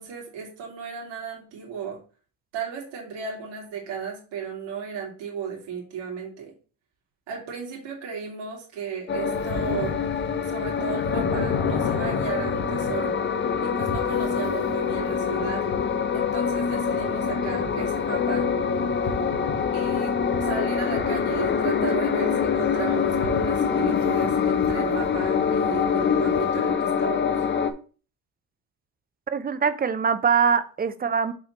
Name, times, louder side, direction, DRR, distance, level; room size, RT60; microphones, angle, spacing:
voice 1, 0.0-2.0 2.5-6.5 7.3-10.0 10.4-13.2 13.6-15.6 16.1-18.5 19.7-20.1 20.4-27.4, right 6 dB, 85° right, -2 dB, 2.6 m, -35 dB
sound 1, 9.1-27.7, left 6 dB, 25° left, 0.6 m, -25 dB
sound 2, 9.3-26.7, left 4 dB, 70° left, 1.7 m, -36 dB
voice 2, 29.3-31.3, right 6 dB, 20° right, 12 dB, 0.6 m, -23 dB
6.1 x 3.1 x 5.8 m, 0.38 s
cardioid pair, 115°, 42 cm